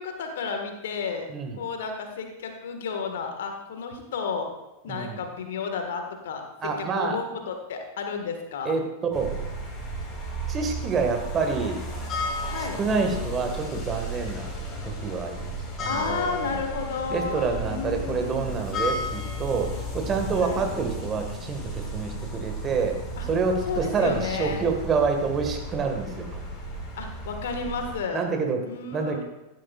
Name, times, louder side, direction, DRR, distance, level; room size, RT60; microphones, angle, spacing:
voice 1, 0.0-1.3 1.5-4.5 4.8-8.8 12.4-12.8 15.8-18.6 20.4-20.7 23.2-23.3 23.6-24.6 26.9-28.3 28.6-29.2, left 5 dB, 60° left, 4 dB, 1.8 m, -32 dB
voice 2, 6.6-7.2 8.7-8.8 9.1-9.4 10.5-11.8 12.8-14.5 15.0-15.5 15.8-16.6 17.1-26.4 28.1-28.6 28.9-29.2, right 5 dB, 25° right, 4 dB, 1.8 m, -27 dB
sound 1, 9.1-28.0, equal, 30° left, 2.9 m, -34 dB
14.5 x 12.0 x 2.5 m, 0.95 s
figure-of-eight pair, 90°, 0 cm